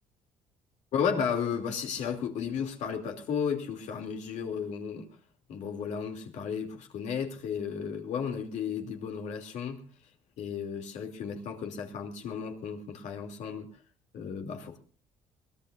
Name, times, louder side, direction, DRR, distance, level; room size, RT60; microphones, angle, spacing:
voice 1, 0.9-5.1 5.5-9.9 10.4-13.7 14.1-14.8, left 7 dB, 70° left, 3 dB, 2.9 m, -34 dB
23.0 x 18.0 x 2.6 m, 0.38 s
cardioid pair, 100°, 13 cm